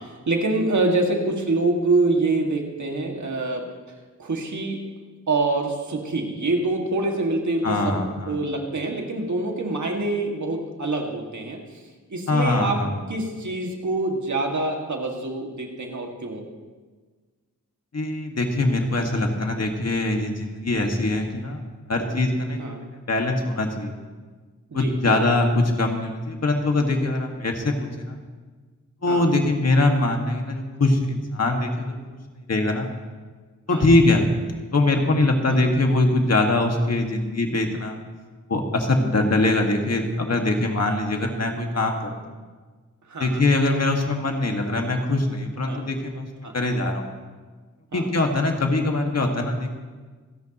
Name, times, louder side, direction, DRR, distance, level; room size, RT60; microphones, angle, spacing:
voice 1, 0.0-4.8 5.3-11.8 12.1-12.8 13.1-16.5 22.6-22.8 24.7-25.3 29.1-29.4 33.7-33.8 35.5-35.6 43.1-43.4 45.7-45.8 46.4-46.6 47.9-48.1, right 2 dB, 70° right, 1 dB, 2.1 m, -26 dB
voice 2, 7.6-8.4 12.3-13.0 17.9-23.9 24.7-28.2 29.0-32.2 32.5-32.9 33.7-34.3 34.7-38.0 38.5-42.1 43.2-46.3 46.5-47.1 47.9-49.7, left 2 dB, 55° left, 2 dB, 1.9 m, -22 dB
27.5 x 10.5 x 3.0 m, 1.4 s
wide cardioid pair, 80°, 31 cm